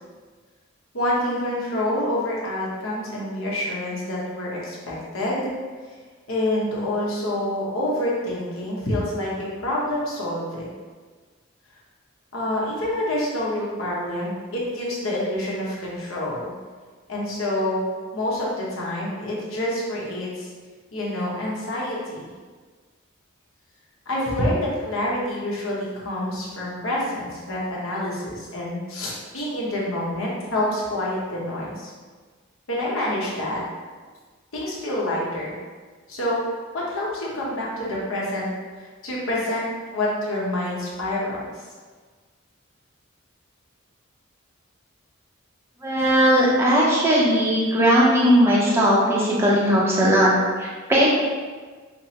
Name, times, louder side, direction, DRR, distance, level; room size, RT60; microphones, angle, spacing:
voice 1, 0.9-5.5 6.3-10.7 12.3-16.5 17.1-17.8 18.1-20.5 20.9-22.3 24.1-31.9 32.7-33.6 34.5-35.6 36.1-36.4 36.7-38.4 38.8-39.7 39.9-41.4 45.9-46.4, left 1 dB, 70° left, -5 dB, 1.0 m, -27 dB
voice 2, 45.8-50.3 50.6-51.1, equal, 10° right, -6 dB, 0.6 m, -18 dB
5.6 x 2.1 x 2.8 m, 1.4 s
head